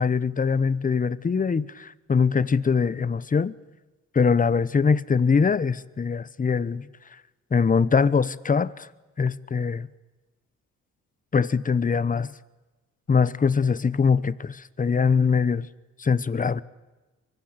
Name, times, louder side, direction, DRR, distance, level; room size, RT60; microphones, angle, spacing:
voice 1, 0.0-3.5 4.1-6.8 7.5-8.9 9.2-9.9 11.3-12.3 13.1-15.7 16.0-16.6, left 5 dB, 25° left, 1.0 m, -22 dB
24.5 x 24.0 x 8.2 m
cardioid pair, 90°, 30 cm